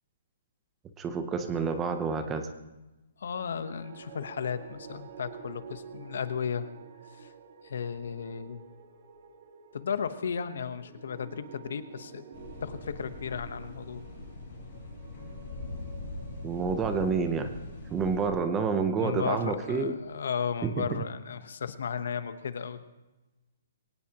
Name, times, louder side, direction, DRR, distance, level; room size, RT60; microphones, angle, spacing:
voice 1, 1.0-2.5 16.4-17.5 17.9-19.9 20.6-21.0, right 5 dB, 10° right, 8 dB, 0.7 m, -29 dB
voice 2, 3.2-6.7 7.1-7.3 7.6-8.6 9.7-12.2 12.6-14.0 19.0-22.8, left 7 dB, 60° left, 11 dB, 1.0 m, -34 dB
sound 1, 3.4-19.7, right 7 dB, 45° right, 1.9 m, -50 dB
sound 2, 12.3-18.3, left 3 dB, 25° left, 6.8 m, -42 dB
22.5 x 18.0 x 3.0 m, 1.1 s
hypercardioid pair, 175°, 0 cm